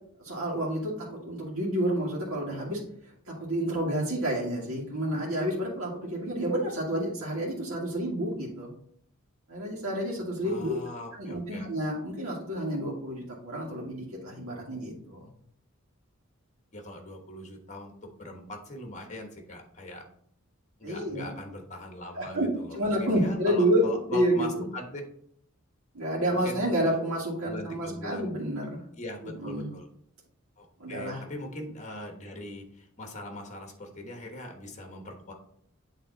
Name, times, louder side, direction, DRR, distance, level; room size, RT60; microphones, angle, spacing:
voice 1, 0.2-8.7 9.5-10.8 11.2-15.3 20.8-21.3 22.1-22.5 22.7-24.6 25.9-28.8 29.2-29.7 30.8-31.2, right 1 dB, 75° right, -6 dB, 2.0 m, -29 dB
voice 2, 10.4-11.7 16.7-17.9 18.2-20.0 20.8-25.0 26.4-27.1 27.5-28.3 29.0-29.9 30.6-35.3, left 1 dB, 35° left, 3 dB, 1.2 m, -41 dB
8.3 x 3.5 x 4.0 m, 0.65 s
head